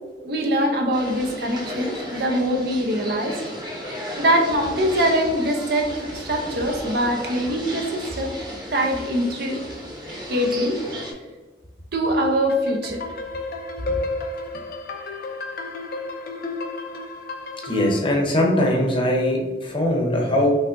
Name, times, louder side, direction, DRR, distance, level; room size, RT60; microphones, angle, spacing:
voice 1, 0.2-3.4 4.2-8.4 8.7-9.6 10.3-10.8 11.9-13.0, equal, 60° right, 3 dB, 0.8 m, -23 dB
sound 1, 0.9-11.1, equal, 25° right, 1.0 m, -35 dB
sound 2, 12.5-18.0, left 3 dB, 55° left, 0.6 m, -32 dB
voice 2, 17.6-20.6, left 1 dB, 30° left, -1 dB, 0.9 m, -21 dB
5.7 x 3.3 x 2.6 m, 1.3 s
head